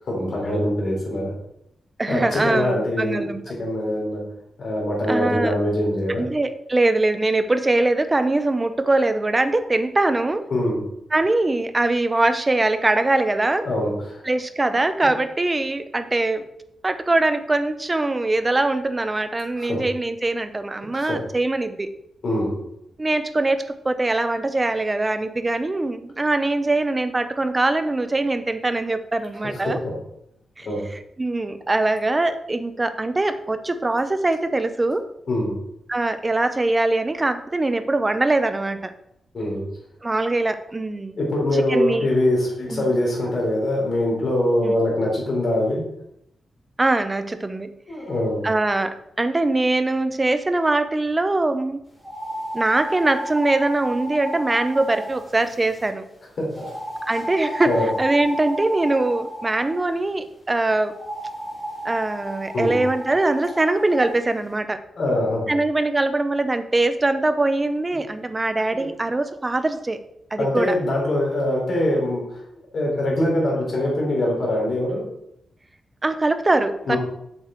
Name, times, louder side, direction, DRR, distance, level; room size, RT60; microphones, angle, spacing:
voice 1, 0.1-1.2 2.1-3.3 3.6-4.2 4.6-6.2 10.5-10.8 13.6-14.2 19.6-19.8 20.9-21.2 22.2-22.5 29.8-29.9 30.6-30.8 35.3-35.5 39.3-39.6 41.2-45.8 47.9-48.4 56.4-56.7 57.6-57.9 62.5-62.8 65.0-65.4 68.7-68.9 70.4-72.2 72.7-75.0 76.9-77.0, left 1 dB, 45° left, -3 dB, 3.7 m, -23 dB
voice 2, 2.0-3.4 5.1-5.5 6.2-10.5 11.1-13.7 14.2-16.5 16.8-21.9 23.0-29.8 30.6-30.7 31.2-35.1 35.9-38.9 40.0-41.2 41.5-42.1 42.7-42.9 44.6-44.7 46.8-47.7 48.4-51.8 52.5-56.0 57.1-60.9 61.8-64.8 65.5-70.0 70.3-70.8 76.0-77.0, right 2 dB, 15° right, 10 dB, 0.5 m, -22 dB
sound 1, 52.0-55.9 56.5-59.8 60.9-64.1, equal, 5° left, 3.6 m, -32 dB
7.5 x 6.5 x 4.4 m, 0.79 s
wide cardioid pair, 170°, 0 cm